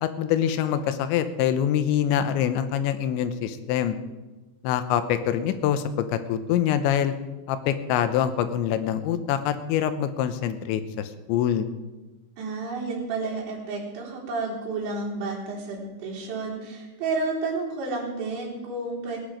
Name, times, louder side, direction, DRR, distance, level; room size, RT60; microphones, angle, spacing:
voice 1, 0.0-4.0 4.6-7.1 7.5-11.7, left 10 dB, 85° left, 11 dB, 3.2 m, -25 dB
voice 2, 12.4-19.2, right 3 dB, 90° right, -5 dB, 6.2 m, -31 dB
19.0 x 10.5 x 5.1 m, 1.1 s
omnidirectional pair, 5.1 m